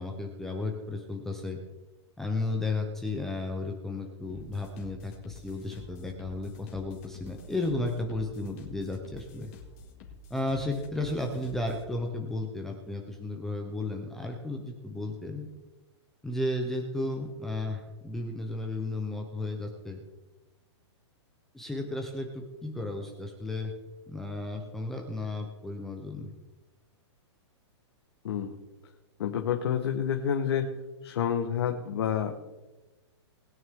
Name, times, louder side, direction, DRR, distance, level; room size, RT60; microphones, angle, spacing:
voice 1, 0.0-1.6 2.2-9.5 10.3-15.5 16.2-20.0 21.5-23.7 24.1-26.3, left 2 dB, 5° left, 2 dB, 0.6 m, -34 dB
sound 1, 4.3-11.9, left 2 dB, 35° left, 2.1 m, -49 dB
voice 2, 28.2-28.6 29.2-30.7 31.0-32.3, left 8 dB, 60° left, 3 dB, 1.2 m, -28 dB
20.5 x 9.4 x 3.6 m, 1.1 s
hypercardioid pair, 175°, 15 cm